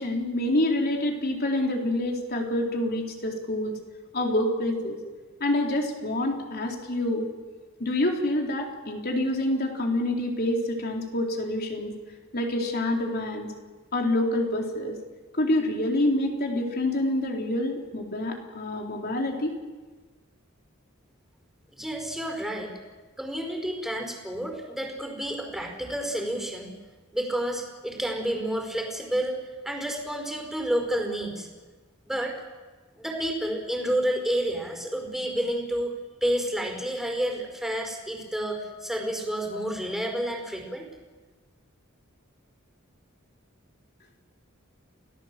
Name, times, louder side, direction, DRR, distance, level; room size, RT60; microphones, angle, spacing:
voice 1, 0.0-3.8 4.1-5.0 5.4-7.3 7.8-12.0 12.3-13.5 13.9-15.0 15.3-19.5, left 1 dB, 50° left, 1 dB, 3.9 m, -27 dB
voice 2, 21.7-22.7 23.2-26.7 27.1-31.5 32.0-32.3 33.0-35.9 36.2-40.9, right 1 dB, ahead, 2 dB, 4.9 m, -30 dB
29.0 x 18.0 x 7.6 m, 1.3 s
head